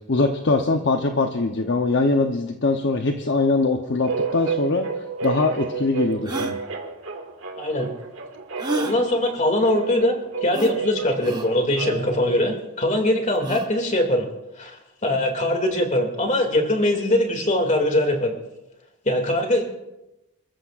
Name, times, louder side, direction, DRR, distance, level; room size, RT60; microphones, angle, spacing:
voice 1, 0.1-4.9 5.2-6.6, left 3 dB, 55° left, 4 dB, 0.9 m, -22 dB
sound 1, 4.0-12.3, right 5 dB, 60° right, 1.9 m, -31 dB
sound 2, 5.2-5.3 6.2-6.6 8.6-9.0 10.5-10.8 11.2-11.5 13.4-13.7, right 2 dB, 20° right, 1.0 m, -29 dB
voice 2, 7.6-7.9 8.7-10.2 10.4-14.3 14.6-14.8 15.0-18.4 19.0-19.6, left 1 dB, 35° left, 3 dB, 2.4 m, -22 dB
28.5 x 14.0 x 2.5 m, 0.95 s
head